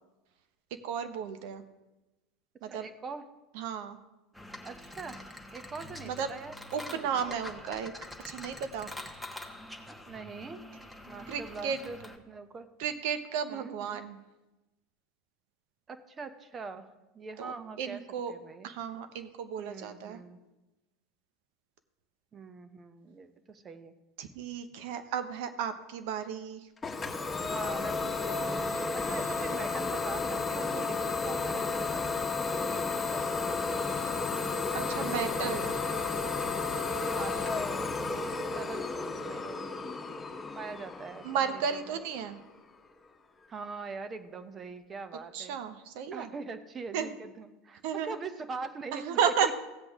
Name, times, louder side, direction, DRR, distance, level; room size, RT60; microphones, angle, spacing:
voice 1, 0.8-1.6 2.6-2.9 3.5-4.0 6.0-6.3 6.7-7.9 8.2-8.9 11.3-11.8 12.8-14.2 17.4-18.3 18.6-20.2 24.2-26.6 35.0-35.7 41.2-42.4 45.3-46.3 46.9-47.2 47.8-48.2 48.9-49.5, right 7 dB, 65° right, 10 dB, 1.0 m, -33 dB
voice 2, 2.6-3.2 4.6-5.2 5.5-7.1 10.1-10.6 11.1-12.0 12.3-12.7 13.5-14.0 15.9-16.9 17.1-18.0 18.3-18.7 19.6-20.4 22.3-23.9 27.4-32.2 32.6-33.6 34.4-35.7 36.9-39.6 40.5-42.0 43.5-45.6 46.1-49.5, right 4 dB, 30° right, 10 dB, 1.0 m, -43 dB
sound 1, 4.3-12.2, left 1 dB, ahead, 1.3 m, -45 dB
Idling / Domestic sounds home sounds, 26.8-42.4, left 4 dB, 15° left, 1.6 m, -32 dB
15.5 x 7.9 x 3.7 m, 1.0 s
hypercardioid pair, 80°, 0 cm